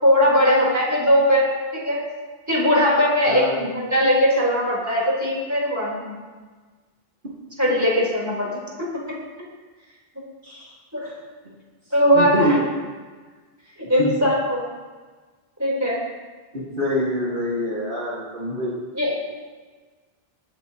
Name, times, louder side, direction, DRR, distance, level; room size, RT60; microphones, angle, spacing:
voice 1, 0.0-1.4 1.7-2.0 2.5-6.1 7.6-8.5 10.9-11.1 11.9-12.6 13.8-14.6 15.6-16.0 19.0-19.3, equal, 15° right, -5 dB, 4.1 m, -19 dB
voice 2, 3.3-3.6 10.4-10.7 11.0-11.1 12.1-12.7 14.0-14.2 16.5-18.7, equal, 55° right, -7 dB, 2.2 m, -25 dB
21.5 x 9.9 x 3.0 m, 1.4 s
omnidirectional pair, 1.1 m